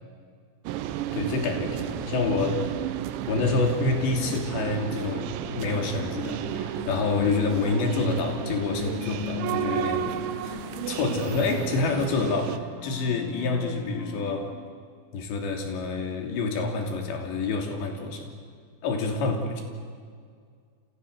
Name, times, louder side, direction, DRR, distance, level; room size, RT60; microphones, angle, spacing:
sound 1, 0.7-12.6, right 11 dB, 85° right, 3.3 m, -32 dB
voice 1, 1.1-2.6 3.3-10.5 10.9-14.5 15.1-18.3 18.8-19.6, left 3 dB, 70° left, 3 dB, 5.1 m, -27 dB
sound 2, 5.4-14.5, left 6 dB, 35° left, 1.9 m, -40 dB
29.5 x 27.5 x 6.7 m, 2.1 s
omnidirectional pair, 5.2 m